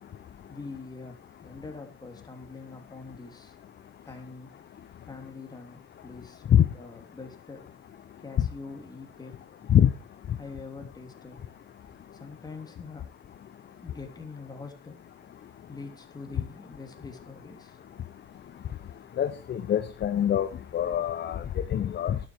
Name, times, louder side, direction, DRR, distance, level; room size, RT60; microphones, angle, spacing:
voice 1, 0.2-3.6 4.0-4.5 5.0-7.7 8.2-9.4 10.4-11.4 12.1-13.1 13.8-15.0 15.7-17.8, left 3 dB, 15° left, 4 dB, 3.0 m, -44 dB
voice 2, 19.2-20.5 20.7-21.4 21.7-22.2, left 10 dB, 35° left, 9 dB, 0.9 m, -23 dB
12.0 x 9.5 x 4.7 m, 0.33 s
cardioid pair, 140°, 29 cm